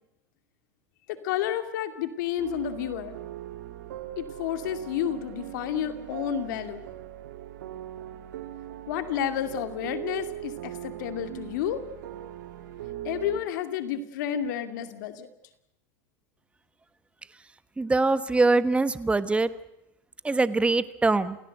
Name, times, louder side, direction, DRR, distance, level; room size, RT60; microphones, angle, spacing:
voice 1, 1.1-3.1 4.2-6.8 8.9-11.8 13.0-15.3, left 10 dB, 80° left, 9 dB, 2.5 m, -31 dB
sound 1, 2.4-13.4, right 12 dB, 85° right, 2.1 m, -40 dB
voice 2, 17.8-19.5 20.2-21.4, right 3 dB, 10° right, 14 dB, 1.2 m, -23 dB
28.5 x 16.5 x 8.0 m, 0.89 s
supercardioid pair, 110°, 10 cm